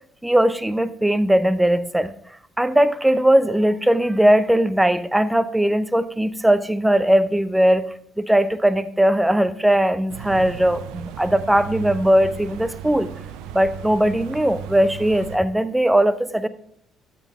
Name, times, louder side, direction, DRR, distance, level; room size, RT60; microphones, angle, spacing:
voice 1, 0.2-2.1 2.6-13.1 13.5-16.5, right 1 dB, 5° right, 15 dB, 0.7 m, -19 dB
sound 1, 10.1-15.4, right 8 dB, 65° right, 0.5 m, -36 dB
13.5 x 5.4 x 3.7 m, 0.64 s
figure-of-eight pair, 50°, 0 cm